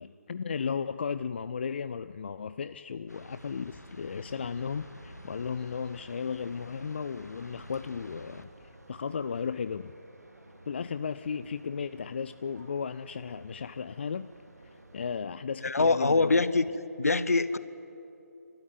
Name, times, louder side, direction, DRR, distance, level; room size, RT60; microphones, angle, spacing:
voice 1, 0.0-8.5 8.9-9.9 10.7-14.3 14.9-16.5, left 6 dB, 40° left, 13 dB, 0.4 m, -35 dB
sound 1, 3.1-8.4, left 1 dB, 85° left, 1.9 m, -49 dB
sound 2, 4.6-15.2, right 1 dB, 80° right, 2.2 m, -55 dB
voice 2, 15.6-16.6 17.0-17.6, left 3 dB, 65° left, 15 dB, 0.9 m, -24 dB
30.0 x 13.0 x 9.5 m, 3.0 s
figure-of-eight pair, 145°, 9 cm